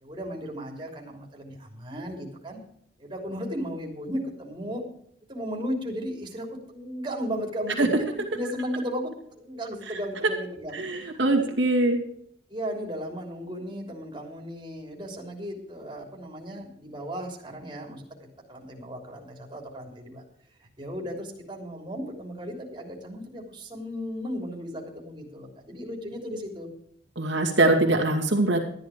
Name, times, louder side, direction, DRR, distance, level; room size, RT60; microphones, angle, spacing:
voice 1, 0.0-2.6 3.0-4.8 5.3-11.1 11.3-11.4 12.5-18.0 18.5-20.2 20.8-26.7, equal, 25° right, 1 dB, 3.3 m, -35 dB
voice 2, 10.7-12.0 27.2-28.6, right 2 dB, 70° right, 0 dB, 2.4 m, -22 dB
13.5 x 11.0 x 5.0 m, 0.68 s
head